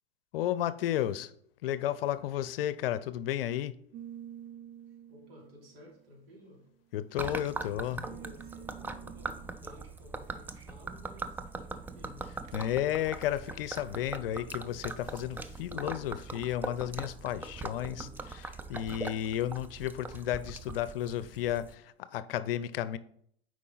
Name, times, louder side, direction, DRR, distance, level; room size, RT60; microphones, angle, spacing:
voice 1, 0.3-1.3 1.6-3.7 6.9-8.0 12.5-18.1 18.3-18.4 18.7-23.0, left 12 dB, 65° left, 0.6 m, -33 dB
sound 1, 3.9-6.8 7.5-9.5 12.4-12.7 13.8-14.1 14.6-15.7, right 10 dB, 45° right, 0.6 m, -50 dB
voice 2, 5.1-6.7 7.2-12.3 17.7-18.1, left 1 dB, 70° right, 3.1 m, -54 dB
Gurgling / Liquid, 7.2-21.8, right 3 dB, 5° right, 0.3 m, -41 dB
8.2 x 4.9 x 3.9 m
hypercardioid pair, 95°, 31 cm